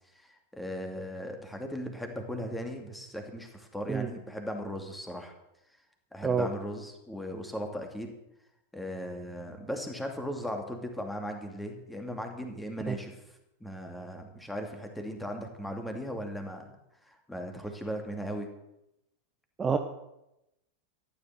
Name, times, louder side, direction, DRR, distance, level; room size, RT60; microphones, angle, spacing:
voice 1, 0.1-5.3 6.1-8.1 8.7-13.2 13.6-16.7 17.0-18.5, equal, 5° left, 4 dB, 2.5 m, -37 dB
voice 2, 3.9-4.1 6.2-6.5 12.9-13.0 19.6-19.8, right 5 dB, 20° right, 6 dB, 1.0 m, -27 dB
14.0 x 10.5 x 6.9 m, 0.87 s
figure-of-eight pair, 90°, 0 cm